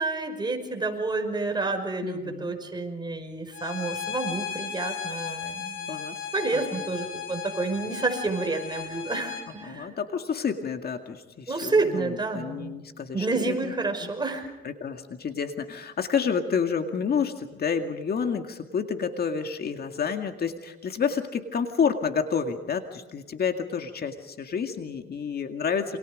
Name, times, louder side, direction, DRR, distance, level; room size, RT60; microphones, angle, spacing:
voice 1, 0.0-6.0 6.3-9.9 11.5-12.9 13.1-14.5, right 3 dB, 20° right, 4 dB, 5.4 m, -29 dB
voice 2, 2.0-2.5 5.9-6.2 6.7-6.8 9.7-13.7 14.0-14.1 14.6-26.0, left 6 dB, 50° left, 6 dB, 2.1 m, -29 dB
Bowed string instrument, 3.5-9.5, left 7 dB, 85° left, 4.6 m, -36 dB
28.5 x 26.0 x 5.3 m, 1.1 s
cardioid pair, 90°, 20 cm